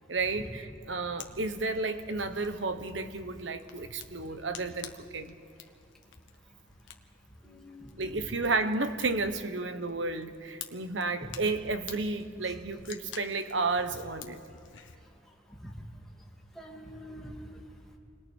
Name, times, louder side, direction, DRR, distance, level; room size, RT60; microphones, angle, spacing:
voice 1, 0.1-5.4 8.0-14.4, right 3 dB, 75° right, 9 dB, 1.2 m, -32 dB
Fire, 1.2-15.0, left 6 dB, 85° left, 1.4 m, -50 dB
voice 2, 7.4-8.5 12.4-12.5 15.6-15.7 16.5-17.6, equal, ahead, -3 dB, 2.7 m, -45 dB
28.0 x 21.0 x 4.6 m, 2.4 s
head